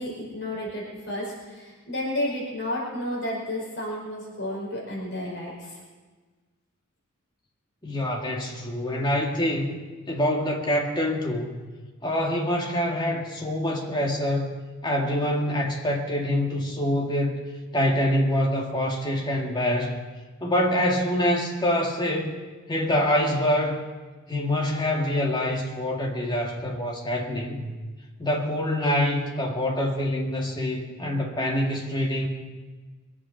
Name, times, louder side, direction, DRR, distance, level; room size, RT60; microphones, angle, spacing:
voice 1, 0.0-5.8, left 1 dB, 60° left, -4 dB, 5.3 m, -32 dB
voice 2, 7.8-9.8 10.1-11.6 12.0-14.6 14.8-17.4 17.7-20.0 20.4-22.3 22.7-23.8 24.3-27.6 28.2-32.3, left 1 dB, 20° left, -1 dB, 2.1 m, -25 dB
23.0 x 8.5 x 6.4 m, 1.3 s
head